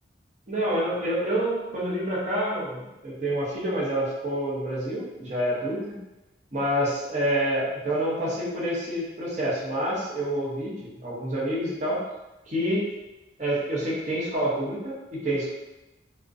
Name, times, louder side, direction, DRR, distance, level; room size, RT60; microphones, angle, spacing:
voice 1, 0.5-6.0 6.5-12.1 12.5-12.8 13.4-15.5, right 1 dB, 40° right, -6 dB, 0.7 m, -27 dB
2.5 x 2.1 x 2.4 m, 0.99 s
head